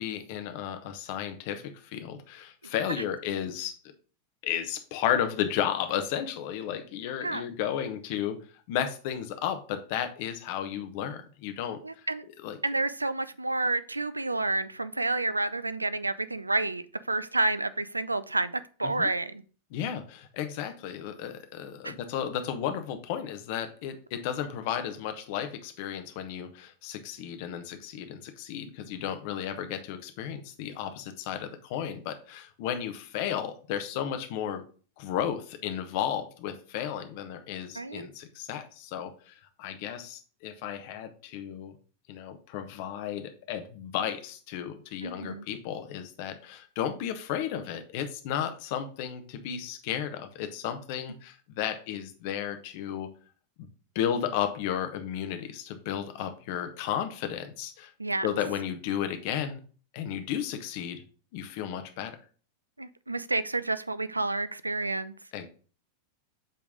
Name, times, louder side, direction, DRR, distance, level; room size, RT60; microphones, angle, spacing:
voice 1, 0.0-3.8 4.4-8.4 8.7-11.8 12.4-12.6 18.8-19.1 19.7-34.6 35.0-41.8 42.1-53.1 53.6-53.7 53.9-57.9 58.2-59.6 59.9-61.0 61.3-62.2 65.3-65.5, left 9 dB, 50° left, 8 dB, 0.9 m, -33 dB
voice 2, 11.8-12.3 12.6-18.5 18.8-19.4 21.8-21.9 37.8-38.1 45.0-45.5 58.0-58.3 62.8-65.1, right 2 dB, 80° right, 15 dB, 0.3 m, -29 dB
7.7 x 3.4 x 3.6 m, 0.39 s
figure-of-eight pair, 90°, 0 cm